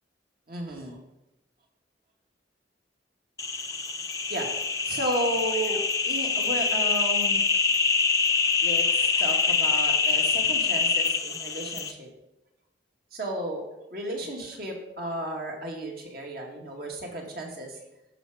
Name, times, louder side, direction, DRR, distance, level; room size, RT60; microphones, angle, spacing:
voice 1, 0.5-1.0 4.3-7.4 8.6-12.1 13.1-13.6 13.9-17.8, right 1 dB, 55° right, 1 dB, 2.2 m, -33 dB
sound 1, 3.4-11.9, left 5 dB, 20° left, 0.6 m, -25 dB
14.0 x 6.0 x 5.1 m, 0.93 s
head